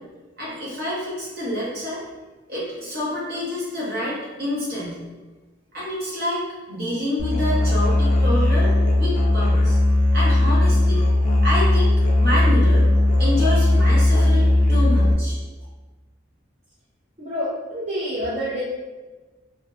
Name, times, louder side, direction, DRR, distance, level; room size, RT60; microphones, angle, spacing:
voice 1, 0.4-2.0 2.5-5.0 5.7-6.4 6.7-9.8 10.1-15.4, left 1 dB, 50° right, -7 dB, 0.9 m, -28 dB
Musical instrument, 7.2-15.1, left 1 dB, 40° left, 0.3 m, -17 dB
voice 2, 17.2-18.6, equal, 35° right, -9 dB, 0.5 m, -27 dB
2.6 x 2.1 x 2.4 m, 1.2 s
head